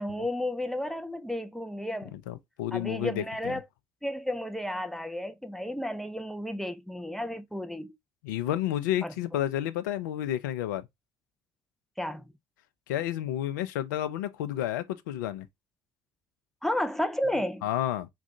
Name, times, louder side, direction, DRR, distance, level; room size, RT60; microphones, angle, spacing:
voice 1, 0.0-2.1 2.7-3.6 4.0-7.9 9.0-9.1 12.0-12.3 16.6-17.7, left 1 dB, 5° left, 0.5 m, -32 dB
voice 2, 2.1-3.6 8.2-10.9 12.9-15.5 17.6-18.1, left 12 dB, 75° left, 0.4 m, -31 dB
3.6 x 2.3 x 2.6 m
figure-of-eight pair, 55°, 10 cm